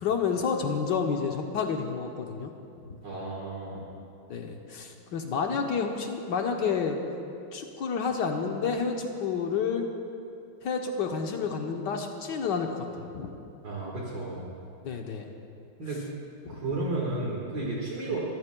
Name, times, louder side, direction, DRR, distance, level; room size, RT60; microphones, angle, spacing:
voice 1, 0.0-2.5 4.3-7.0 7.5-9.9 10.6-12.8 13.1-13.3 14.8-15.3 16.4-16.6 18.1-18.2, left 5 dB, 65° left, 3 dB, 1.3 m, -30 dB
voice 2, 3.0-3.8 13.6-14.5 15.8-16.1 16.5-18.2, right 2 dB, 60° right, -5 dB, 2.3 m, -33 dB
24.0 x 14.0 x 2.2 m, 2.6 s
omnidirectional pair, 2.3 m